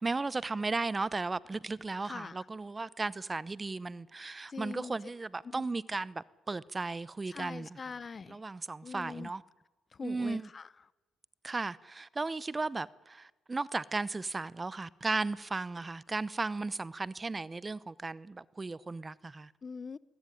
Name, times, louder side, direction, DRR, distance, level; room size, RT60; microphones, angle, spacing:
voice 1, 0.0-7.8 8.3-9.4 10.0-10.5 11.4-19.5, right 3 dB, 25° right, 0.7 m, -35 dB
voice 2, 2.0-2.4 4.5-4.9 5.4-5.7 7.3-8.4 8.8-9.3 9.9-10.7 19.6-20.0, left 5 dB, 35° left, 0.7 m, -43 dB
21.5 x 19.5 x 9.9 m
cardioid pair, 90°, 0 cm